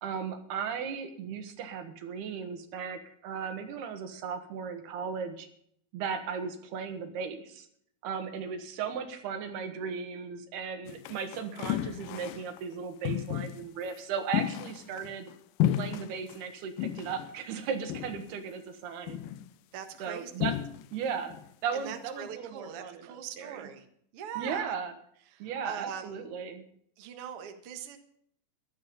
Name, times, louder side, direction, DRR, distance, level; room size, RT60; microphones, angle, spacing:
voice 1, 0.0-5.5 5.9-7.7 8.0-15.3 15.7-19.2 20.0-20.6 20.9-21.4 21.6-23.7 24.4-24.9 25.4-26.6, right 6 dB, 80° right, 7 dB, 3.6 m, -36 dB
sound 1, 10.9-12.6 13.0-13.7 14.3-15.3 15.6-16.4 16.8-17.3 17.9-18.4 19.1-19.5 20.4-21.0 21.3-21.5, left 12 dB, 80° left, 2.0 m, -32 dB
voice 2, 19.7-20.3 21.7-23.9 24.1-24.7 25.3-26.2 27.0-28.0, right 9 dB, 55° right, 6 dB, 1.7 m, -41 dB
15.5 x 12.0 x 5.4 m, 0.67 s
omnidirectional pair, 4.6 m